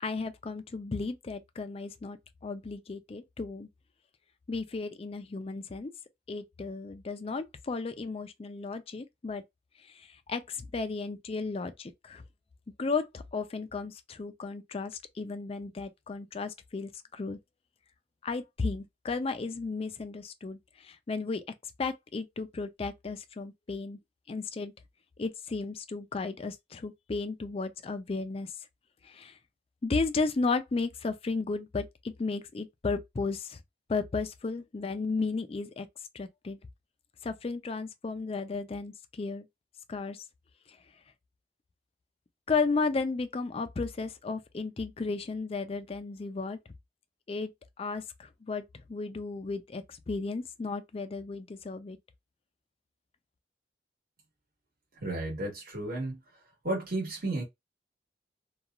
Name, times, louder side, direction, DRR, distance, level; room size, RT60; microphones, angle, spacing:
voice 1, 0.0-2.2 2.4-3.7 4.5-5.9 6.3-9.4 9.9-12.2 12.8-17.4 18.2-21.4 21.8-24.0 24.3-24.7 25.2-28.5 29.0-29.4 29.8-33.6 33.9-35.9 36.1-36.6 37.2-39.5 39.9-40.2 42.5-46.6 47.3-47.5 47.8-48.6 48.9-52.0, left 4 dB, 35° left, 0.4 m, -34 dB
voice 2, 55.0-56.2 56.6-57.4, right 2 dB, 55° right, 1.4 m, -33 dB
2.9 x 2.3 x 2.3 m
head